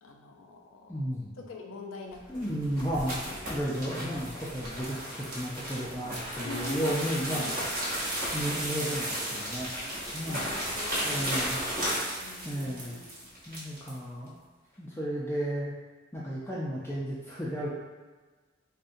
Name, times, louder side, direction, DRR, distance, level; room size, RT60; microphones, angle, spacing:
voice 1, 0.0-1.1 1.3-2.5 3.3-3.4 3.8-3.9 6.4-7.6 10.3-11.5 12.2-13.3, left 3 dB, 90° left, 1 dB, 0.4 m, -44 dB
voice 2, 0.9-1.3 2.3-7.5 8.3-9.7 10.1-10.4 11.0-11.6 12.5-13.0 13.5-14.4 14.8-15.7 16.1-17.7, equal, 10° left, -7 dB, 0.4 m, -33 dB
sound 1, 2.2-14.0, equal, 45° right, 0.9 m, -34 dB
3.6 x 2.1 x 2.6 m, 1.3 s
head